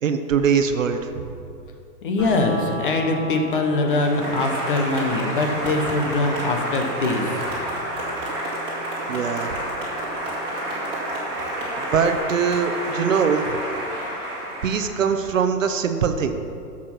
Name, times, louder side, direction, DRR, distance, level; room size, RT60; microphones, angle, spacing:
voice 1, 0.0-1.2 9.1-9.5 11.8-13.6 14.6-16.4, right 6 dB, 50° right, 8 dB, 0.9 m, -22 dB
voice 2, 2.0-7.3, left 2 dB, 30° left, 3 dB, 1.1 m, -23 dB
sound 1, 2.2-12.2, left 1 dB, 5° left, 0.7 m, -38 dB
Applause, 3.8-15.3, right 1 dB, 10° right, 2.0 m, -29 dB
13.5 x 7.4 x 5.9 m, 2.6 s
hypercardioid pair, 170°, 49 cm